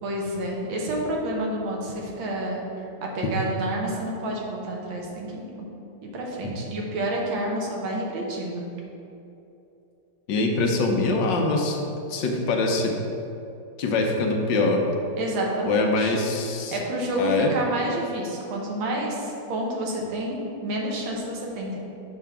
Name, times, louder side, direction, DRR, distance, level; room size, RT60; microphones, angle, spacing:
voice 1, 0.0-2.6 3.0-5.7 6.0-8.7 15.2-16.2 16.7-21.8, right 1 dB, 85° right, -1 dB, 1.8 m, -29 dB
voice 2, 10.3-11.8 12.1-13.0 13.8-14.8 15.7-16.8 17.2-17.5, left 3 dB, 75° left, 2 dB, 1.4 m, -23 dB
7.1 x 5.6 x 3.6 m, 2.8 s
omnidirectional pair, 2.1 m